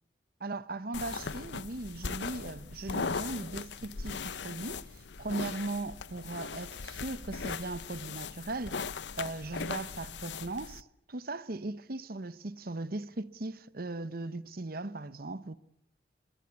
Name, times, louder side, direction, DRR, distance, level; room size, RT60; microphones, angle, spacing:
voice 1, 0.4-8.8 9.2-15.5, right 2 dB, 55° right, 1.0 m, -38 dB
sound 1, 0.9-10.8, left 5 dB, 85° left, 0.8 m, -39 dB
sound 2, 1.7-1.9 2.2-3.1 3.4-3.6 4.0-4.2 4.9-5.2 5.6-5.8 6.2-6.3 6.7-6.9 7.4-7.6 8.2-8.4 8.8-9.5, right 5 dB, 20° right, 4.8 m, -71 dB
23.0 x 22.0 x 8.4 m
head